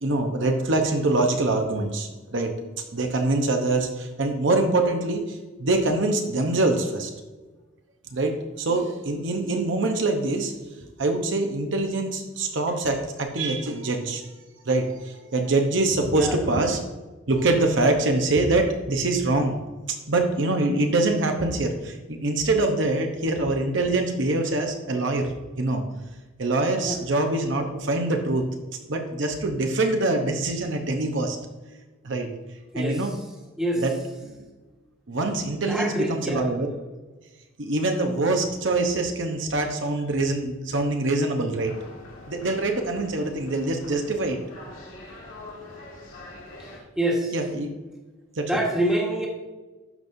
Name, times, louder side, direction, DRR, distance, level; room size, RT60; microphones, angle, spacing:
voice 1, 0.0-2.5 2.9-7.1 8.1-10.5 11.0-14.2 14.6-16.8 17.3-19.6 20.1-25.3 25.6-25.8 26.4-28.5 28.9-31.4 32.0-32.3 32.7-33.1 33.8-33.9 34.2-34.3 35.1-36.7 37.6-41.7 42.3-44.4 47.3-47.7 48.4-48.5, right 2 dB, 60° right, 3 dB, 0.8 m, -24 dB
voice 2, 35.7-36.5 47.0-47.3 48.5-49.3, right 1 dB, 5° right, -2 dB, 1.4 m, -26 dB
sound 1, 41.6-46.8, left 2 dB, 80° left, 1.9 m, -44 dB
12.0 x 5.3 x 2.7 m, 1.2 s
head